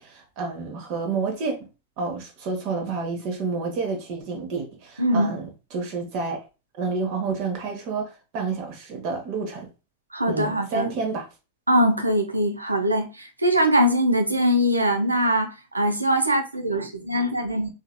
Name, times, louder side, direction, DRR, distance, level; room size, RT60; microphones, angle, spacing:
voice 1, 0.0-1.6 2.0-6.4 6.8-9.7 10.3-11.2, right 4 dB, 45° right, 1.0 m, -29 dB
voice 2, 5.0-5.3 10.1-10.9 11.7-17.7, equal, 80° right, 0.6 m, -22 dB
3.8 x 2.7 x 2.2 m
figure-of-eight pair, 90°, 0 cm